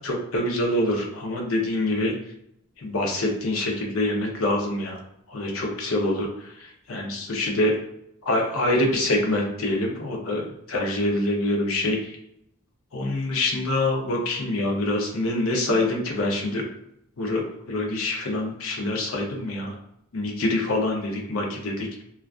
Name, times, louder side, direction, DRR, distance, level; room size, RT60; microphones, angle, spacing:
voice 1, 0.0-2.1 2.8-5.0 5.3-7.7 8.3-12.2 12.9-16.6 17.2-19.7 20.1-22.0, left 1 dB, 65° left, 1 dB, 0.6 m, -25 dB
2.4 x 2.2 x 2.3 m, 0.77 s
head